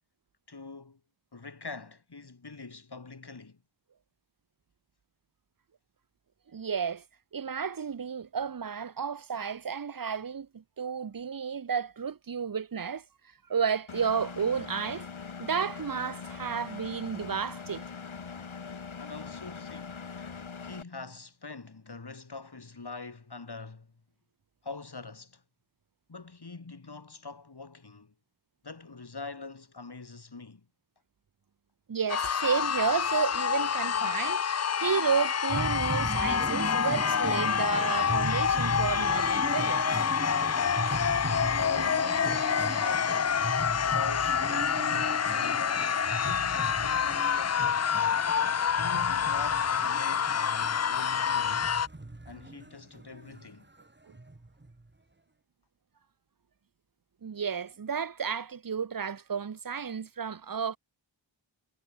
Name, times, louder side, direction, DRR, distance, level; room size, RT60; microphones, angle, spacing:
voice 1, 0.5-1.0 1.3-3.6 19.0-20.1 20.6-23.9 24.6-25.4 26.1-28.1 28.6-30.7 41.1-45.8 46.3-48.0 48.7-51.8 52.2-53.7, left 4 dB, 55° left, 6.3 m, -44 dB
voice 2, 6.5-7.0 7.3-13.0 13.5-15.1 15.4-17.9 31.9-39.8 54.1-54.2 57.2-60.8, right 6 dB, 45° right, 0.9 m, -32 dB
Engine, 13.9-20.8, left 5 dB, 80° left, 3.5 m, -42 dB
sound 1, 32.1-51.9, left 7 dB, 35° left, 0.4 m, -27 dB
sound 2, 35.5-53.5 53.8-53.9 54.1-54.8, right 2 dB, 25° right, 3.0 m, -37 dB
wide cardioid pair, 75°, 47 cm